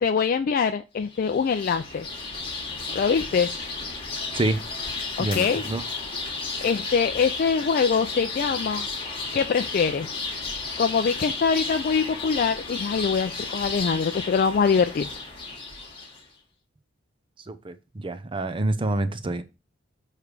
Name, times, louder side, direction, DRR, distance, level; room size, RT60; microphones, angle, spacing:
voice 1, 0.0-2.1 2.9-3.5 5.2-5.6 6.6-8.9 9.3-10.1 10.8-15.1, left 6 dB, 45° left, 7 dB, 0.3 m, -23 dB
sound 1, 1.1-16.2, left 3 dB, 25° left, 1.5 m, -33 dB
voice 2, 5.2-5.8 17.5-19.4, right 2 dB, 25° right, 10 dB, 0.6 m, -27 dB
6.8 x 3.3 x 4.8 m, 0.29 s
head